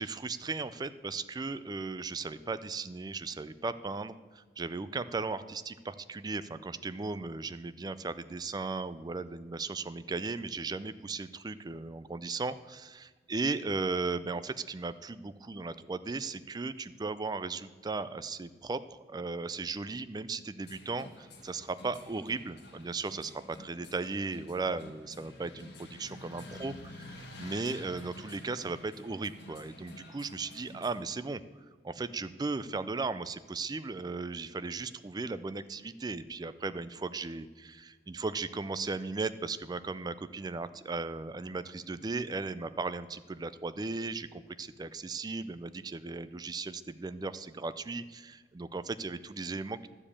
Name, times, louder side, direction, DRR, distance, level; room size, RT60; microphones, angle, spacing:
voice 1, 0.0-18.8 19.1-26.7 27.4-31.4 31.8-49.9, right 3 dB, 20° right, 13 dB, 0.4 m, -36 dB
sound 1, 20.6-30.9, left 2 dB, 65° left, 1.8 m, -50 dB
12.0 x 5.1 x 8.4 m, 1.4 s
head